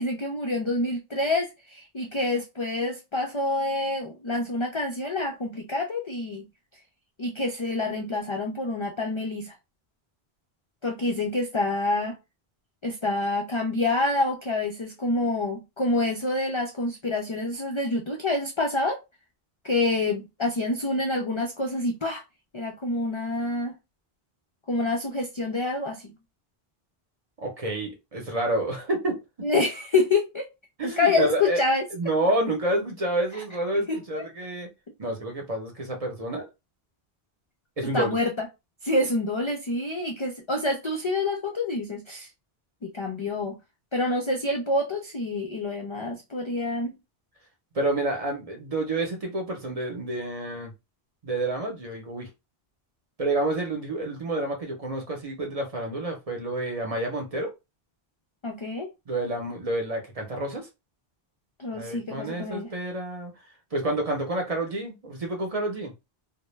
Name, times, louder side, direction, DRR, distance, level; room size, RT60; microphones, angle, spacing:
voice 1, 0.0-6.5 7.2-9.5 10.8-12.2 12.8-19.0 19.6-22.2 22.5-23.8 24.7-26.1 29.4-30.5 30.8-31.9 33.9-34.2 37.9-38.5 38.8-42.3 42.8-43.6 43.9-46.9 58.4-58.9 61.6-62.7, left 2 dB, 55° left, 0.3 m, -27 dB
voice 2, 27.4-29.2 30.8-31.6 31.9-34.7 35.0-36.5 37.8-38.1 47.7-50.7 51.2-52.3 53.2-57.5 59.1-60.7 61.7-63.3 63.7-65.9, right 1 dB, 40° right, 0.7 m, -29 dB
2.1 x 2.1 x 3.0 m
omnidirectional pair, 1.0 m